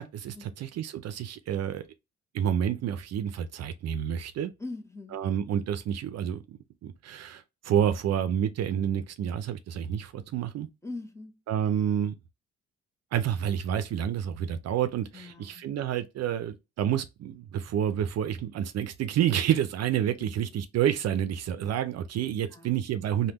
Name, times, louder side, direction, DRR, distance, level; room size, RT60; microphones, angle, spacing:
voice 1, 0.0-1.8 2.3-4.5 5.1-10.7 11.5-12.1 13.1-23.3, right 9 dB, 60° right, 0.4 m, -29 dB
voice 2, 4.6-5.2 10.8-11.4 15.1-15.7 20.2-20.3 22.5-22.7, left 2 dB, 10° left, 0.6 m, -41 dB
3.4 x 2.2 x 2.8 m
cardioid pair, 90°, 30 cm